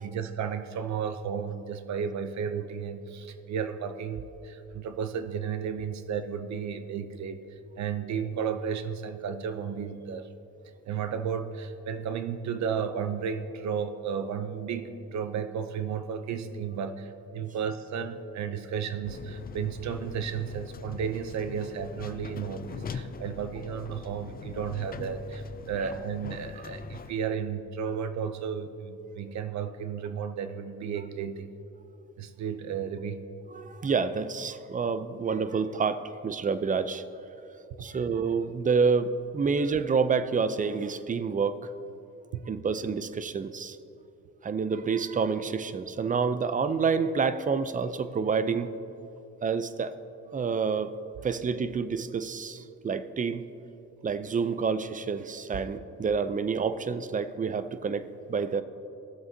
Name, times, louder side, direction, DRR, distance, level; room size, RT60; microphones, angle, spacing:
voice 1, 0.0-7.4 7.8-10.3 10.9-31.5 32.2-33.2 42.3-42.4, right 7 dB, 65° right, 10 dB, 0.6 m, -33 dB
sound 1, 19.0-27.1, left 6 dB, 30° left, 0.4 m, -42 dB
voice 2, 33.5-37.0 37.8-41.7 42.5-43.8 44.4-48.7 49.4-49.9 50.3-50.9 51.2-53.5 54.0-58.6, right 5 dB, 25° right, 12 dB, 0.5 m, -28 dB
17.0 x 7.4 x 2.8 m, 2.8 s
cardioid pair, 90°, 30 cm